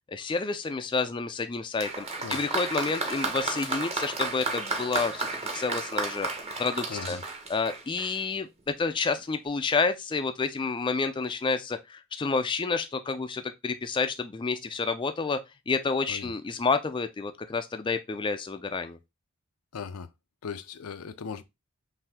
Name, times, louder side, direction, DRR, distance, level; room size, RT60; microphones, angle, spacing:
voice 1, 0.1-5.3 5.5-6.3 6.6-7.2 7.5-19.0, left 4 dB, 20° left, 0.3 m, -29 dB
Applause, 1.8-8.3 9.2-9.3, right 3 dB, 30° right, 0.9 m, -33 dB
voice 2, 6.9-7.2 16.1-16.3 19.7-20.1 20.4-21.4, left 6 dB, 85° left, 0.5 m, -38 dB
5.7 x 2.7 x 3.4 m
head